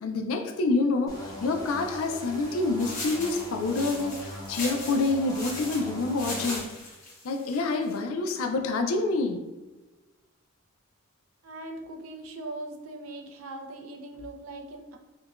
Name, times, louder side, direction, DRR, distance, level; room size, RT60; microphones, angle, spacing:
voice 1, 0.0-6.7 7.2-9.4, left 3 dB, 75° left, 4 dB, 0.4 m, -27 dB
sound 1, 1.1-6.6, equal, 15° left, 0.6 m, -40 dB
sound 2, 2.8-8.0, left 2 dB, 40° left, 1.0 m, -38 dB
voice 2, 11.4-15.0, right 2 dB, 85° right, 3 dB, 0.5 m, -40 dB
4.5 x 2.2 x 2.4 m, 1.2 s
head